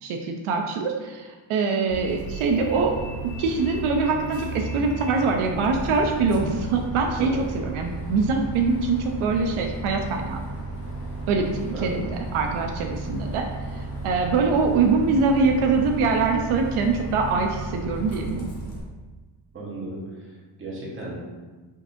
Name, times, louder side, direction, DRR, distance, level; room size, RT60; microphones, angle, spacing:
voice 1, 0.0-2.9 3.4-10.4 11.3-13.5 14.0-18.5, right 4 dB, 85° right, 3 dB, 0.6 m, -23 dB
Bus, 1.9-18.8, right 2 dB, 55° left, 1.3 m, -34 dB
voice 2, 19.5-20.3 20.6-21.2, right 2 dB, 25° right, -6 dB, 1.2 m, -34 dB
5.0 x 4.0 x 2.6 m, 1.3 s
cardioid pair, 175°, 48 cm